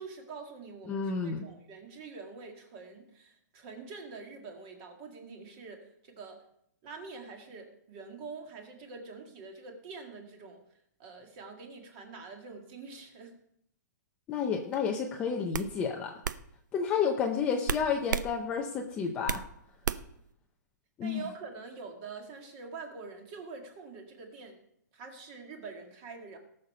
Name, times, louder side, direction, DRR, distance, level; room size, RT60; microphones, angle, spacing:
voice 1, 0.0-6.4 6.8-10.6 11.0-13.4 21.0-24.6 24.9-26.4, right 4 dB, 25° right, 3 dB, 1.8 m, -45 dB
voice 2, 0.9-1.5 14.3-16.1 16.7-19.4 21.0-21.2, left 6 dB, 10° left, 2 dB, 0.5 m, -30 dB
sound 1, 14.7-15.0 15.5-15.7 16.2-16.4 17.7-18.3 18.7-19.5 19.8-20.2, right 7 dB, 85° right, 0.6 m, -32 dB
18.0 x 6.5 x 5.5 m, 0.73 s
hypercardioid pair, 175°, 10 cm